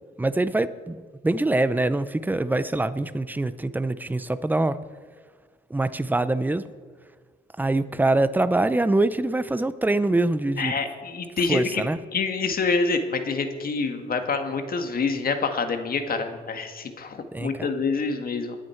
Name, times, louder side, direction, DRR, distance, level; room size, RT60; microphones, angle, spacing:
voice 1, 0.2-4.8 5.7-6.7 7.6-10.7 11.5-12.0 17.3-17.7, right 2 dB, 10° right, 14 dB, 0.6 m, -24 dB
voice 2, 10.6-11.8 12.1-18.6, left 4 dB, 50° left, 6 dB, 1.7 m, -26 dB
21.5 x 9.5 x 4.5 m, 1.5 s
cardioid pair, 90°, 20 cm